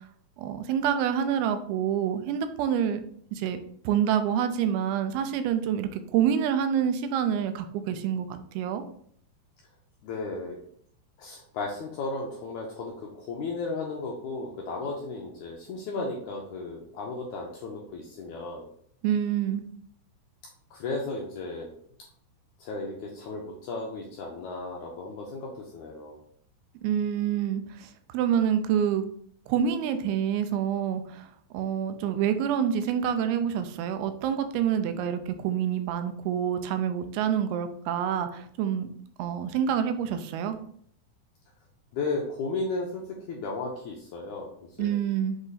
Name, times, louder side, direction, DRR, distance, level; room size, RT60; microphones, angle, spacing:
voice 1, 0.4-3.0 3.3-3.6 3.8-8.8 19.0-19.6 26.8-29.0 29.5-31.3 31.5-38.9 39.2-40.6 44.8-45.4, right 9 dB, 85° right, 9 dB, 2.5 m, -27 dB
voice 2, 10.0-10.6 11.2-18.6 20.7-21.7 22.6-26.2 41.9-44.9, left 3 dB, 75° left, -1 dB, 1.8 m, -34 dB
7.7 x 3.0 x 4.1 m, 0.64 s
omnidirectional pair, 4.4 m